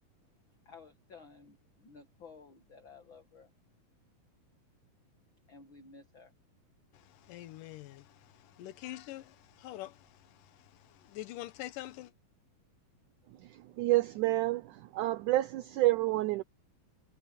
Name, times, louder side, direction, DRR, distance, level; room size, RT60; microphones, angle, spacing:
voice 1, 0.6-3.5 5.5-6.3, left 4 dB, 40° left, 2.2 m, -54 dB
voice 2, 6.9-12.1, left 15 dB, 75° left, 2.5 m, -46 dB
voice 3, 13.8-16.4, right 18 dB, 75° right, 1.9 m, -28 dB
omnidirectional pair, 4.1 m